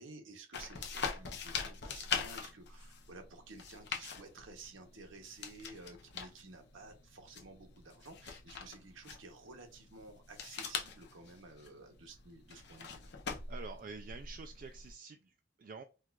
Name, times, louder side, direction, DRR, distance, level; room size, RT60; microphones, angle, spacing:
voice 1, 0.0-13.1, right 3 dB, 90° right, 4 dB, 0.9 m, -53 dB
sound 1, 0.5-14.9, left 5 dB, 55° left, 0.6 m, -43 dB
voice 2, 13.5-15.8, right 4 dB, 45° right, 5 dB, 0.3 m, -48 dB
4.5 x 2.4 x 2.4 m, 0.32 s
head